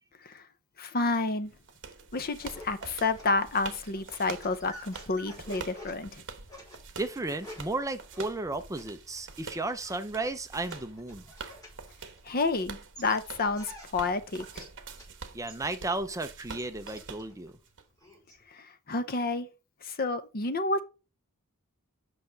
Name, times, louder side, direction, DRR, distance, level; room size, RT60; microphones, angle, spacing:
voice 1, 0.8-1.5 2.1-6.2 12.2-14.6 18.5-19.5 19.8-20.8, left 3 dB, 45° left, 0.7 m, -30 dB
sound 1, 1.3-17.8, right 5 dB, 60° right, 1.2 m, -46 dB
sound 2, 2.4-12.6 12.9-15.1 15.5-18.4, left 1 dB, 15° left, 5.4 m, -51 dB
voice 2, 7.0-11.2 15.3-17.5, right 2 dB, 15° right, 0.6 m, -34 dB
8.6 x 5.7 x 4.0 m
head